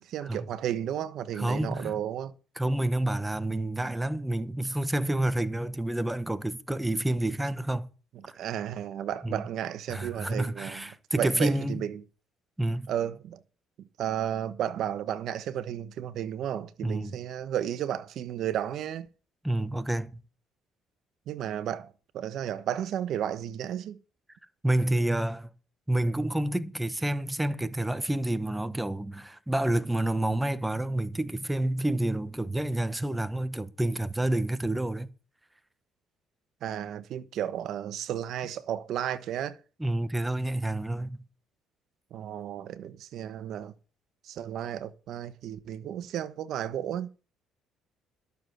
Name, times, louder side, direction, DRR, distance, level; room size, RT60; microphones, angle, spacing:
voice 1, 0.1-2.3 8.4-10.8 11.1-12.0 12.9-13.4 14.0-19.1 21.3-24.0 36.6-39.6 42.1-43.7 44.2-47.1, right 10 dB, 65° right, 1.2 m, -33 dB
voice 2, 1.3-2.0 2.6-7.9 8.3-8.4 9.2-9.4 9.9-11.8 12.6-12.9 16.8-17.2 19.4-20.2 24.6-25.5 25.9-35.1 39.8-41.2, right 1 dB, 5° right, 1.1 m, -29 dB
12.5 x 7.0 x 7.9 m
cardioid pair, 105°, 0 cm